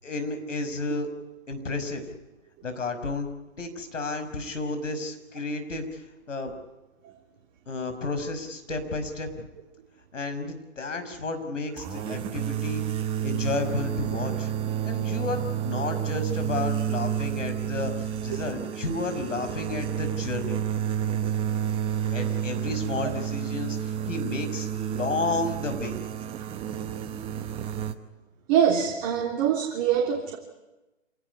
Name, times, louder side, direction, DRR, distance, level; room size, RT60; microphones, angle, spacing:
voice 1, 0.0-1.1 1.5-2.1 2.6-3.3 3.6-6.5 7.7-9.4 10.1-12.8 13.2-14.5 14.8-20.6 22.1-26.0, left 3 dB, 75° left, 7 dB, 6.0 m, -32 dB
sound 1, 11.8-27.9, right 9 dB, 15° right, 1.0 m, -30 dB
voice 2, 28.5-30.4, right 8 dB, 30° right, 0 dB, 3.3 m, -23 dB
27.0 x 18.5 x 9.7 m, 1.0 s
hypercardioid pair, 140°, 38 cm